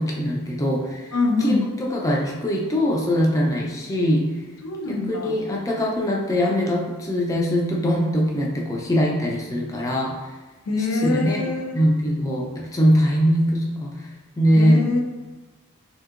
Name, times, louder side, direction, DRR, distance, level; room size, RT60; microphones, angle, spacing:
voice 1, 0.0-1.1 1.4-4.2 4.8-10.1 11.0-11.4 11.7-14.1 14.4-14.8, equal, 15° left, -2 dB, 0.4 m, -22 dB
voice 2, 1.1-1.7 4.6-5.3 10.7-11.8 14.5-15.0, left 3 dB, 80° left, 2 dB, 0.5 m, -24 dB
3.5 x 2.7 x 2.4 m, 1.2 s
head